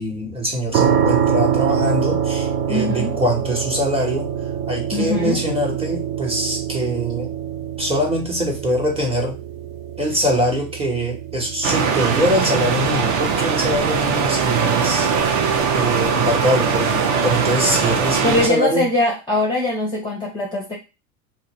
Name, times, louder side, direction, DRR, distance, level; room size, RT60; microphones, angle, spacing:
voice 1, 0.0-4.3 4.7-7.3 7.8-9.4 10.0-15.1 15.7-18.9, equal, 10° right, 0 dB, 1.0 m, -23 dB
sound 1, 0.7-15.6, right 8 dB, 85° right, 0.6 m, -25 dB
voice 2, 2.7-3.1 4.9-5.5 18.2-20.7, left 2 dB, 10° left, -2 dB, 0.7 m, -22 dB
sound 2, 11.6-18.5, right 6 dB, 40° right, 0.6 m, -20 dB
2.4 x 2.2 x 3.0 m, 0.28 s
hypercardioid pair, 80°, 47 cm